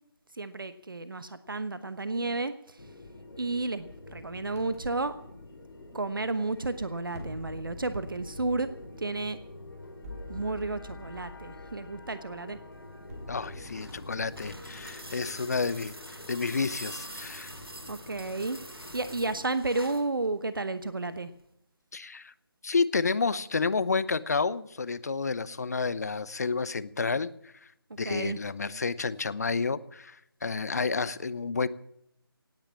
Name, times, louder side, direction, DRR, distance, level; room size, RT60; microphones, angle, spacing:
voice 1, 0.3-2.8 3.4-5.2 5.9-8.7 9.0-9.4 10.3-12.6 17.9-18.6 18.9-21.3 28.0-28.4, right 3 dB, 60° right, 12 dB, 1.1 m, -32 dB
sound 1, 2.8-19.4, left 2 dB, 60° left, 3.4 m, -47 dB
sound 2, 4.6-4.8 7.1-14.8, left 1 dB, 40° right, 3.9 m, -47 dB
voice 2, 13.3-15.9 16.3-17.5 21.9-22.3 22.6-27.5 28.0-31.7, left 4 dB, 45° left, 18 dB, 0.8 m, -30 dB
sound 3, 13.3-20.1 21.4-21.5, right 1 dB, 75° right, 4.7 m, -45 dB
18.0 x 8.9 x 8.6 m, 0.76 s
figure-of-eight pair, 155°, 13 cm